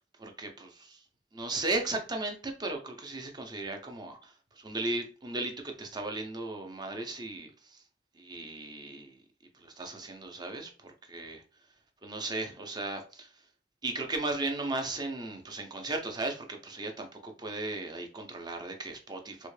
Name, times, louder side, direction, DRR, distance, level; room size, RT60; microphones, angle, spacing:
voice 1, 0.2-1.0 1.3-7.8 8.2-9.2 9.5-11.4 12.0-13.3 13.8-19.5, right 2 dB, 25° right, 0.6 m, -36 dB
3.6 x 2.1 x 3.2 m
head